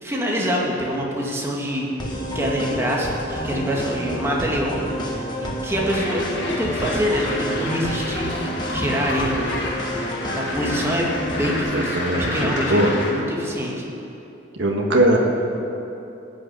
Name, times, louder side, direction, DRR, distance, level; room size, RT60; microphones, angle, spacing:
voice 1, 0.0-1.9 2.3-4.8 5.1-8.3 8.7-9.6 10.3-13.8, equal, 15° right, -3 dB, 2.0 m, -25 dB
sound 1, 2.0-11.6, equal, 25° left, 1.6 m, -29 dB
sound 2, 5.9-13.1, left 2 dB, 65° left, 2.0 m, -30 dB
voice 2, 11.5-12.9 14.6-15.2, right 1 dB, 75° right, 0 dB, 1.6 m, -21 dB
16.5 x 6.4 x 8.8 m, 2.9 s
head